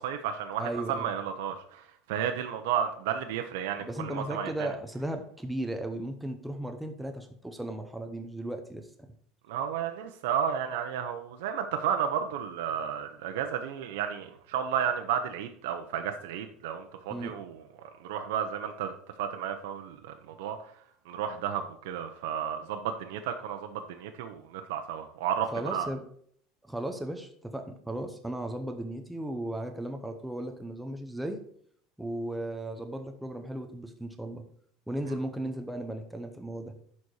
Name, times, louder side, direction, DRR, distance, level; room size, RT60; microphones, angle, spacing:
voice 1, 0.0-1.8 2.1-4.7 9.5-20.7 21.1-25.9, right 8 dB, 85° right, 5 dB, 0.7 m, -32 dB
voice 2, 0.6-1.1 3.8-8.9 17.1-17.3 25.5-26.1 26.7-31.4 32.0-34.4 34.9-36.7, right 1 dB, 5° right, 5 dB, 0.7 m, -36 dB
11.0 x 4.2 x 4.7 m, 0.64 s
cardioid pair, 165°, 0 cm